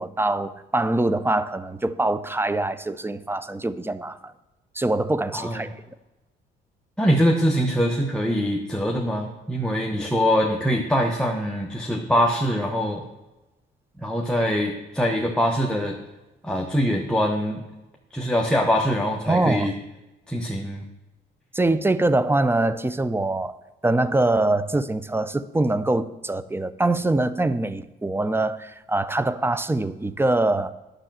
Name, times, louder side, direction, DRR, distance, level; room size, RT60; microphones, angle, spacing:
voice 1, 0.0-4.3 4.7-5.7 19.3-19.7 21.5-23.6 23.8-30.7, right 2 dB, 10° right, 14 dB, 0.6 m, -23 dB
voice 2, 5.3-5.7 7.0-13.0 14.0-16.0 16.4-17.6 18.1-19.7 20.3-20.8, equal, 5° left, 2 dB, 1.1 m, -23 dB
10.0 x 6.5 x 7.5 m, 1.1 s
cardioid pair, 90°, 20 cm